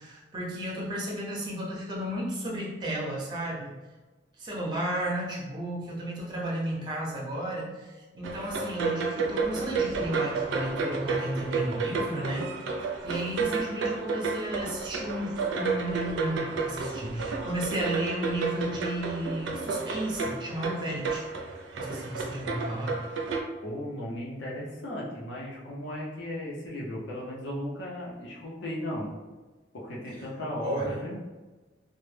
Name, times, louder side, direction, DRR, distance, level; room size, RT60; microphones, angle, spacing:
voice 1, 0.0-3.8 4.4-12.5 13.0-21.2 21.8-23.0 30.6-31.0, right 1 dB, 25° right, -4 dB, 0.5 m, -33 dB
sound 1, 8.2-23.4, right 4 dB, 85° right, 0.4 m, -31 dB
voice 2, 23.6-29.1 29.7-31.2, left 1 dB, 85° left, -4 dB, 0.6 m, -36 dB
2.1 x 2.0 x 3.1 m, 1.2 s
head